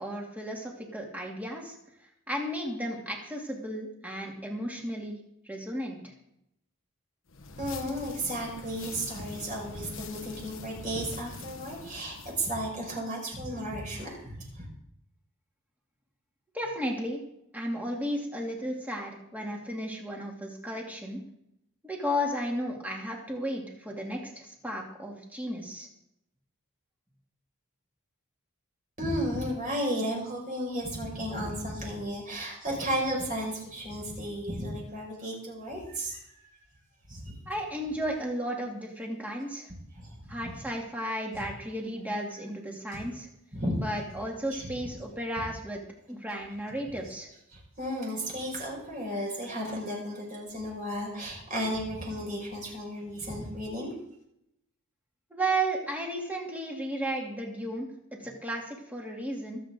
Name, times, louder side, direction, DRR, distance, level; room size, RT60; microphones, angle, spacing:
voice 1, 0.0-1.8 2.3-5.2 5.4-6.1 16.5-17.2 17.5-21.2 21.8-25.9 37.5-39.7 40.3-43.3 43.8-45.8 46.1-47.3 55.3-59.6, right 1 dB, 5° right, -1 dB, 2.7 m, -34 dB
sound 1, 7.3-12.6, left 4 dB, 60° left, 1.2 m, -45 dB
voice 2, 7.6-14.7 29.0-36.2 37.1-37.3 39.9-40.3 41.3-41.4 42.9-43.0 43.5-43.8 44.5-44.7 47.5-53.9, equal, 35° right, -1 dB, 5.7 m, -34 dB
25.0 x 8.6 x 3.8 m, 0.77 s
head